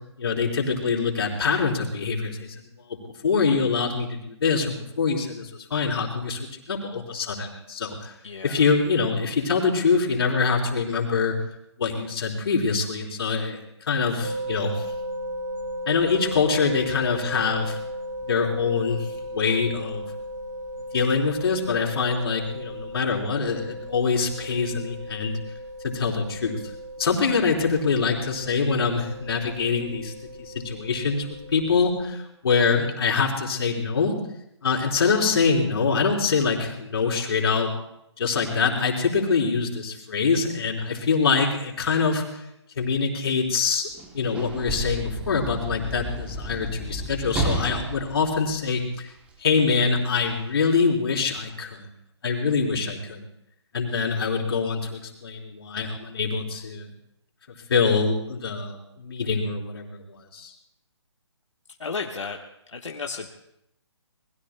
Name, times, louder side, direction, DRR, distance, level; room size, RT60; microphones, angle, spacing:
voice 1, 0.2-2.5 2.9-3.0 3.2-6.4 6.7-8.1 8.4-11.3 11.8-13.6 13.9-14.9 15.9-17.8 18.3-20.0 20.9-25.4 25.8-26.6 27.0-30.1 30.4-31.3 31.5-32.2 32.4-34.2 34.6-37.7 38.2-42.2 42.8-43.9 44.1-49.1 49.4-51.9 52.2-53.3 53.7-56.9 57.7-60.5, left 5 dB, 55° left, -1 dB, 4.0 m, -24 dB
voice 2, 8.2-8.6 61.8-62.4 62.7-63.3, left 4 dB, 90° left, 1 dB, 1.4 m, -33 dB
sound 1, 14.2-32.0, equal, 40° right, 6.7 m, -36 dB
Sliding door / Slam, 43.9-49.3 50.2-50.3, right 1 dB, 10° right, 1.0 m, -32 dB
26.5 x 20.5 x 2.3 m, 0.80 s
hypercardioid pair, 160°, 15 cm